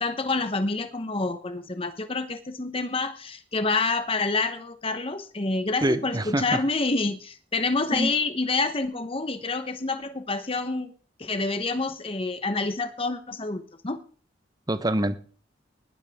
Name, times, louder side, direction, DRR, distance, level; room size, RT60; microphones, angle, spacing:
voice 1, 0.0-10.9 11.2-14.0, left 3 dB, 30° left, 1.0 m, -28 dB
voice 2, 5.8-6.6 7.9-8.1 14.7-15.2, right 1 dB, 20° right, 1.0 m, -25 dB
19.5 x 12.0 x 3.6 m
head